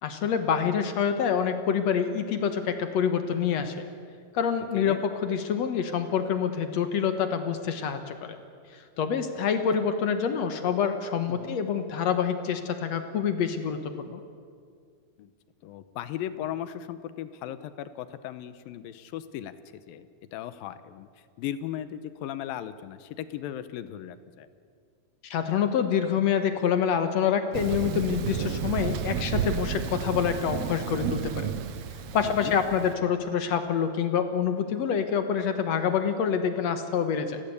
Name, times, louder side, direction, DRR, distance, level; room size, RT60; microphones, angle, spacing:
voice 1, 0.0-3.8 4.3-8.4 8.7-14.2 25.2-31.5 32.1-37.4, left 7 dB, 60° left, 8 dB, 2.0 m, -26 dB
voice 2, 15.6-19.5 19.9-21.1 21.4-24.5 32.2-32.5, left 11 dB, 80° left, 13 dB, 2.5 m, -37 dB
Thunder, 27.5-32.9, right 8 dB, 70° right, 1.5 m, -32 dB
29.5 x 16.0 x 8.2 m, 2.2 s
omnidirectional pair, 4.3 m